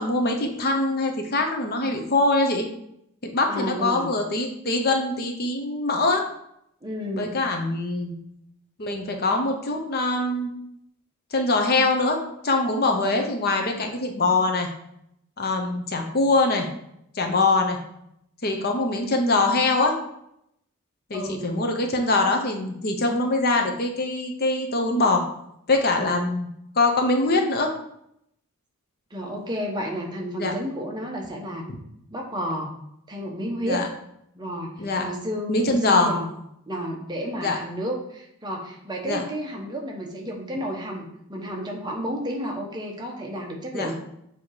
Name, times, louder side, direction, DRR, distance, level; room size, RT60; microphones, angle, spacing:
voice 1, 0.0-2.7 3.2-6.3 7.1-8.1 8.8-10.5 11.3-14.7 15.4-16.7 17.1-17.8 18.4-20.0 21.1-25.3 25.7-26.5 26.7-27.7 30.4-30.5 33.6-33.9 34.8-35.1 35.5-36.1 37.4-37.6 39.0-39.2 43.7-43.9, left 2 dB, 45° left, 3 dB, 0.7 m, -23 dB
voice 2, 3.5-4.1 6.8-7.3 21.1-21.5 26.0-26.2 29.1-31.6 32.1-32.8 33.1-33.8 34.3-34.7 35.0-36.3 36.7-44.0, equal, 20° right, 0 dB, 0.9 m, -31 dB
7.2 x 2.9 x 4.7 m, 0.76 s
head